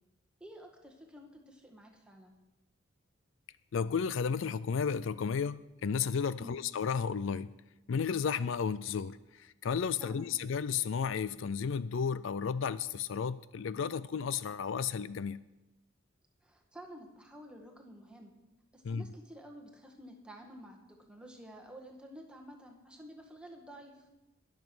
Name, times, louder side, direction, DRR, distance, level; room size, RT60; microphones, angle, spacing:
voice 1, 0.4-2.3 6.4-6.6 10.0-10.3 16.4-18.3 18.7-24.1, equal, 5° right, 2 dB, 1.7 m, -51 dB
voice 2, 3.7-7.6 7.9-15.4 18.8-19.1, left 6 dB, 65° left, 16 dB, 0.4 m, -33 dB
21.0 x 7.3 x 6.1 m, 0.99 s
head